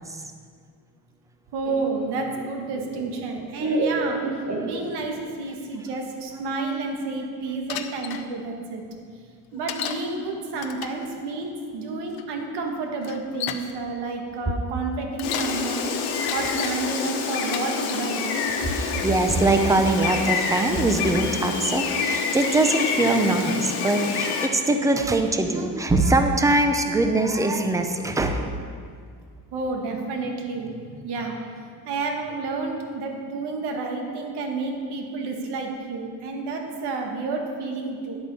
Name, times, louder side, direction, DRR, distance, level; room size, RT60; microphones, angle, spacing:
voice 1, 1.5-8.8 9.5-18.2 29.5-38.2, right 3 dB, 75° right, 2 dB, 1.8 m, -30 dB
Laughter, 1.6-5.3, right 2 dB, 40° right, 1.6 m, -29 dB
Bicycle, 7.7-8.2 9.7-10.1 10.6-11.0 12.1-12.2 13.0-13.7 15.0-15.6 16.1-16.8 17.4-18.1 18.7-19.1, left 10 dB, 65° left, 0.8 m, -33 dB
Gull seagull, 15.2-24.5, left 5 dB, 80° left, 1.4 m, -27 dB
voice 2, 18.7-28.5, right 2 dB, 10° right, 5 dB, 0.6 m, -22 dB
10.5 x 7.9 x 5.6 m, 2.1 s
cardioid pair, 150°, 40 cm